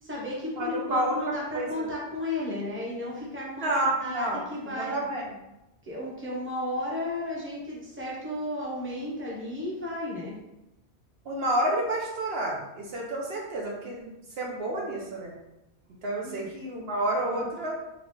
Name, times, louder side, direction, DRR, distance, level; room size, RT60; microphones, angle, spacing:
voice 1, 0.0-3.7 4.0-5.1 5.8-10.3 16.2-16.5 17.2-17.4, left 1 dB, 10° right, -5 dB, 1.0 m, -34 dB
voice 2, 0.6-1.9 3.6-5.2 11.2-14.1 14.4-15.3 16.0-17.8, right 1 dB, 65° right, -2 dB, 0.9 m, -29 dB
4.1 x 3.3 x 3.1 m, 0.95 s
omnidirectional pair, 1.1 m